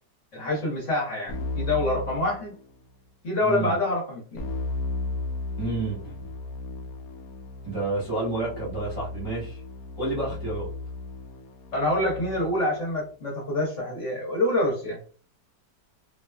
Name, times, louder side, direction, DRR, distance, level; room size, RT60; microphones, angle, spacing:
voice 1, 0.3-2.5 3.2-4.5 11.7-15.0, left 1 dB, 50° left, -4 dB, 1.2 m, -26 dB
Keyboard (musical), 1.3-3.0 4.4-12.7, left 2 dB, 70° left, 0.9 m, -35 dB
voice 2, 3.4-3.8 5.6-6.3 7.6-9.6 10.0-10.7, right 2 dB, 15° right, -6 dB, 0.9 m, -30 dB
3.0 x 2.2 x 2.2 m, 0.39 s
omnidirectional pair, 1.9 m